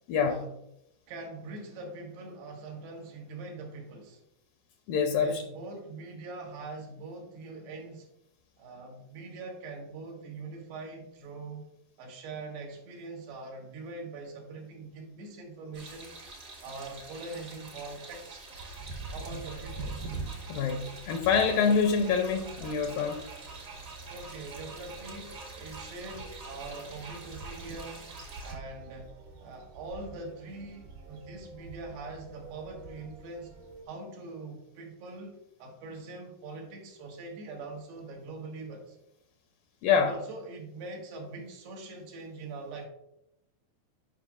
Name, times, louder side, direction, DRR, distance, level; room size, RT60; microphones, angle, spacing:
voice 1, 0.1-0.4 4.9-5.4 20.5-23.2 39.8-40.1, left 6 dB, 80° left, 5 dB, 2.2 m, -26 dB
voice 2, 1.1-4.2 5.2-8.1 8.6-11.6 12.0-16.1 16.6-18.5 19.1-20.0 24.1-28.1 28.4-29.1 29.4-33.5 33.9-39.0 39.9-42.9, right 3 dB, 85° right, 0 dB, 3.6 m, -43 dB
sound 1, 15.7-28.5, right 3 dB, 50° right, 1.0 m, -46 dB
sound 2, 18.5-33.8, right 3 dB, 65° right, 2.1 m, -45 dB
11.0 x 5.8 x 2.4 m, 0.81 s
omnidirectional pair, 4.4 m